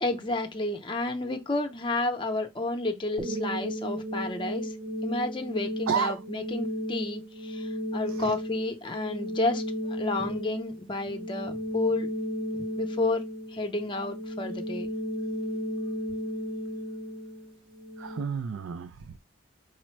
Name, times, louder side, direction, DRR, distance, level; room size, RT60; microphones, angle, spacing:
voice 1, 0.0-4.7 5.0-12.1 12.8-14.9, left 2 dB, 25° left, 0.6 m, -31 dB
sound 1, 3.2-18.2, equal, 25° right, 0.6 m, -34 dB
voice 2, 5.9-6.2 8.1-8.3 12.6-12.7 15.5-15.6 18.0-19.2, right 6 dB, 80° right, 0.4 m, -32 dB
4.9 x 2.1 x 4.4 m
head